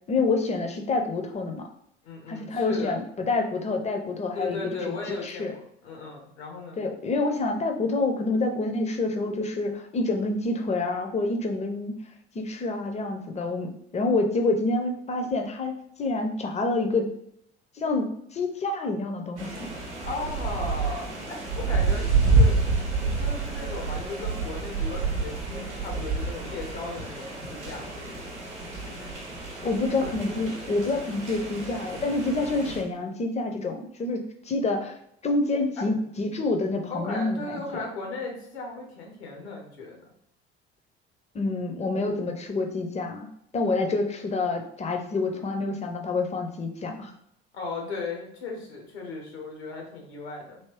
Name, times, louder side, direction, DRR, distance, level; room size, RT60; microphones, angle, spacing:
voice 1, 0.1-1.6 2.3-5.5 6.8-12.0 12.3-17.1 17.8-19.7 29.6-34.9 35.2-37.9 41.3-43.3 43.5-47.1, left 3 dB, 20° left, 5 dB, 0.5 m, -27 dB
voice 2, 2.0-3.0 4.3-6.8 20.0-28.0 35.8-35.9 36.9-40.1 47.5-50.6, left 3 dB, 75° left, 1 dB, 0.9 m, -36 dB
sound 1, 19.4-32.8, right 3 dB, 90° right, 0.7 m, -28 dB
3.4 x 2.9 x 2.9 m, 0.72 s
figure-of-eight pair, 60°, 33 cm